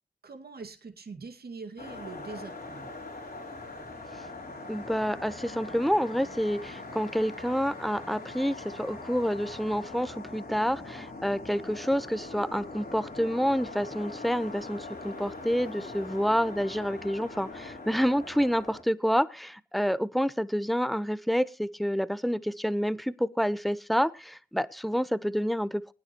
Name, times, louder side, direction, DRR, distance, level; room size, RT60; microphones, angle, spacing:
voice 1, 0.2-2.9, right 4 dB, 70° right, 5 dB, 2.2 m, -43 dB
sound 1, 1.8-18.8, left 2 dB, 65° left, 3.7 m, -42 dB
voice 2, 4.7-25.9, equal, ahead, 16 dB, 0.9 m, -28 dB
20.5 x 9.6 x 3.0 m, 0.30 s
cardioid pair, 45°, 16 cm